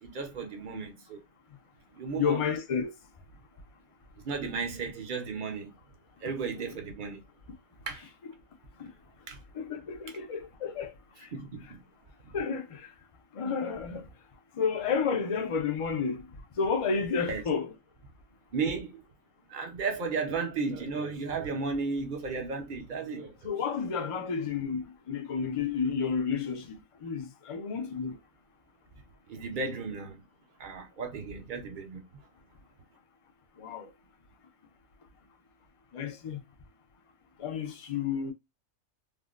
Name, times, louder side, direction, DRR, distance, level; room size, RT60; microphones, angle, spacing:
voice 1, 0.0-1.2 1.9-2.4 4.2-5.7 6.2-7.2 7.9-8.1 9.3-9.4 11.3-11.8 12.2-12.3 17.3-17.4 18.5-19.0 19.5-23.4 29.3-30.2 30.6-32.0, right 4 dB, 45° right, 0.7 m, -34 dB
voice 2, 2.1-2.9 8.8-8.9 9.5-11.3 12.3-12.9 13.3-14.1 14.5-16.3 16.6-17.7 23.4-28.2 33.6-33.9 35.9-36.4 37.4-38.3, left 6 dB, 50° left, 0.4 m, -31 dB
3.5 x 2.1 x 2.4 m
omnidirectional pair, 1.3 m